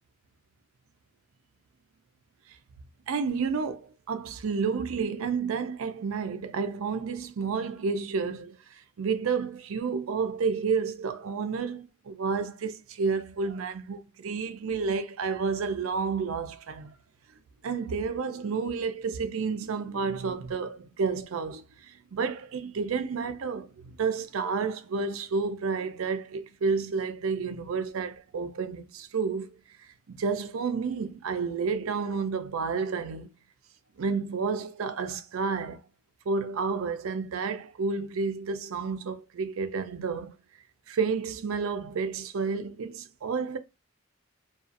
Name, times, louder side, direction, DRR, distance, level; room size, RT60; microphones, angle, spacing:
voice 1, 3.1-16.9 17.6-29.5 30.1-33.3 34.0-35.8 36.3-40.4 40.9-43.6, right 5 dB, 90° right, 0.4 m, -30 dB
2.5 x 2.4 x 2.5 m
head